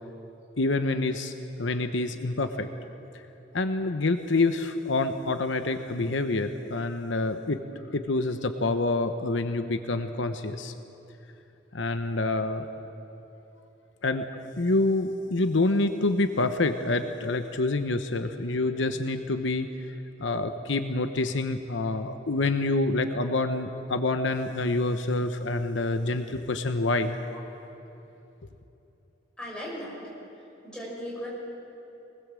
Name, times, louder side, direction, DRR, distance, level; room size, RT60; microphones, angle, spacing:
voice 1, 0.6-2.7 3.5-7.6 7.9-10.7 11.7-12.6 14.0-19.9 20.2-27.2, left 2 dB, 80° left, 8 dB, 0.9 m, -27 dB
voice 2, 29.4-30.0 30.6-31.3, equal, 5° left, -5 dB, 6.3 m, -37 dB
23.5 x 19.5 x 7.6 m, 2.9 s
head